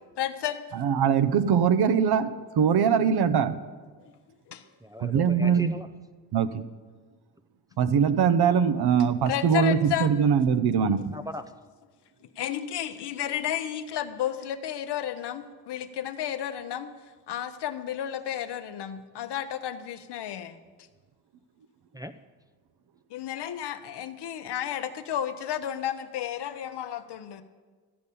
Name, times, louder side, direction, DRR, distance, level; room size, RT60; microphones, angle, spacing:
voice 1, 0.2-0.6 4.5-4.6 9.3-10.1 12.4-16.9 17.3-20.6 23.1-27.4, left 10 dB, 60° left, 9 dB, 0.9 m, -32 dB
voice 2, 0.7-3.6 5.0-5.7 6.3-6.7 7.8-11.1, right 7 dB, 55° right, 11 dB, 0.8 m, -22 dB
voice 3, 4.8-5.9 11.1-11.4 21.9-22.1, equal, 10° right, 7 dB, 0.5 m, -38 dB
13.5 x 5.3 x 8.5 m, 1.4 s
supercardioid pair, 60°, 46 cm